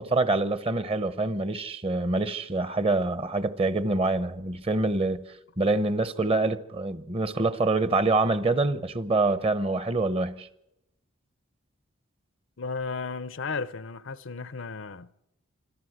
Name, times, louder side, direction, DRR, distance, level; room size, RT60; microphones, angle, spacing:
voice 1, 0.0-5.2 5.6-10.5, right 2 dB, 25° right, 0.8 m, -26 dB
voice 2, 12.6-15.1, left 4 dB, 60° left, 0.7 m, -34 dB
27.0 x 13.0 x 7.9 m
head